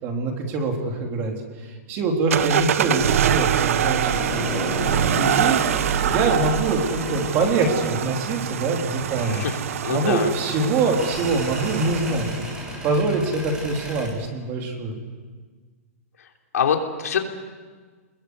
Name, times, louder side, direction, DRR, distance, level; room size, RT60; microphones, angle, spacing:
voice 1, 0.0-14.9, right 3 dB, 25° right, 2 dB, 3.6 m, -25 dB
sound 1, 2.3-12.5, right 10 dB, 65° right, 1.0 m, -25 dB
sound 2, 4.0-14.1, equal, 10° right, 6.6 m, -34 dB
voice 2, 9.2-9.5 9.8-10.3 16.5-17.2, left 7 dB, 90° left, 3 dB, 3.5 m, -24 dB
30.0 x 21.0 x 8.2 m, 1.5 s
hypercardioid pair, 165°, 8 cm